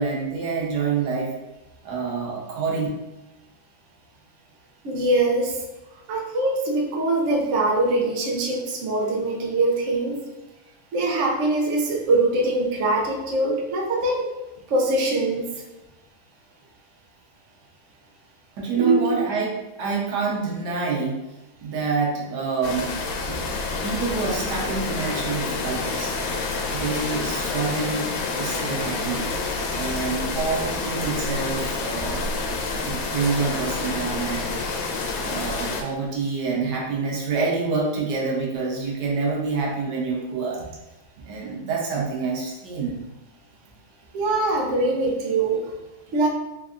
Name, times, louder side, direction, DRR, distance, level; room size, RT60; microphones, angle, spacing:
voice 1, 0.0-1.3 1.8-2.9 18.6-21.2 21.6-22.9 23.8-26.1 26.7-28.1 28.3-29.3 29.7-32.3 32.8-34.9 35.2-40.6 41.2-43.0, right 4 dB, 65° right, -2 dB, 1.3 m, -27 dB
voice 2, 4.8-5.6 6.1-10.2 10.9-14.3 14.7-15.5 18.8-19.2 23.3-23.4 44.1-45.7 46.1-46.3, right 2 dB, 80° right, -1 dB, 0.6 m, -23 dB
sound 1, 22.6-35.8, left 3 dB, 85° left, 1.4 m, -28 dB
3.6 x 3.3 x 2.5 m, 0.99 s
omnidirectional pair, 2.1 m